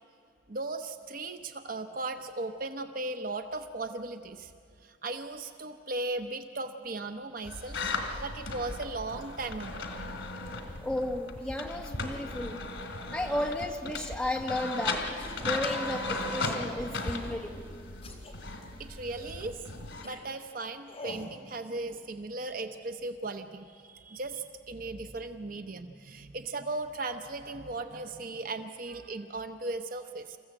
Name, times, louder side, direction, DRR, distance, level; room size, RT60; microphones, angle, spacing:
voice 1, 0.5-4.5 4.8-7.8 8.2-9.9 18.8-19.6 20.0-30.4, right 2 dB, 50° right, 7 dB, 0.8 m, -37 dB
sound 1, 7.4-20.0, left 3 dB, 85° left, 2.7 m, -36 dB
voice 2, 10.8-12.6 13.1-15.1 15.4-17.8, left 1 dB, 5° left, 1 dB, 1.5 m, -33 dB
sound 2, 15.2-15.5 16.0-16.4 17.0-17.5 18.0-18.3 19.1-19.5 20.0-20.2 20.8-21.3, left 1 dB, 30° left, 3.3 m, -46 dB
27.5 x 15.0 x 7.8 m, 2.3 s
head